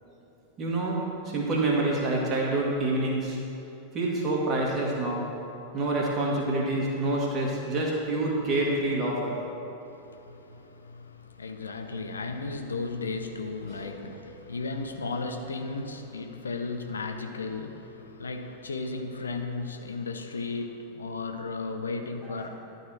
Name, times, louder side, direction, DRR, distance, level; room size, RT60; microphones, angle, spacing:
voice 1, 0.6-3.4 3.9-5.2 5.7-9.4 13.7-14.1 22.4-22.5, right 2 dB, 30° right, 2.0 m, -27 dB
voice 2, 9.9-22.5, left 3 dB, 75° left, 0.6 m, -35 dB
11.5 x 4.1 x 6.2 m
figure-of-eight pair, 90°, 0 cm